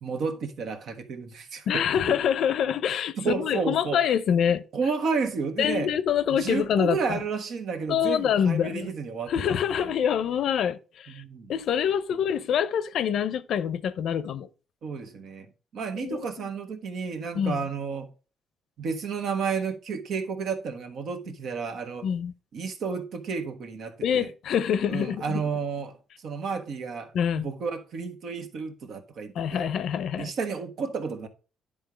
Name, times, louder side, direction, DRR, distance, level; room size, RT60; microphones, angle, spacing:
voice 1, 0.0-2.2 3.2-4.0 4.7-5.9 6.3-9.9 11.1-11.5 14.8-15.5 15.7-18.1 18.8-22.1 22.5-24.3 24.9-26.0 26.2-29.7 30.2-31.3, right 5 dB, 70° right, 1.4 m, -32 dB
voice 2, 1.7-4.6 5.6-7.2 7.9-8.9 9.3-11.2 11.5-14.5 16.0-16.5 17.3-17.6 22.0-22.3 24.0-25.4 27.1-27.5 29.3-30.3, left 8 dB, 70° left, 0.6 m, -26 dB
10.0 x 3.6 x 5.0 m
cardioid pair, 90°, 0 cm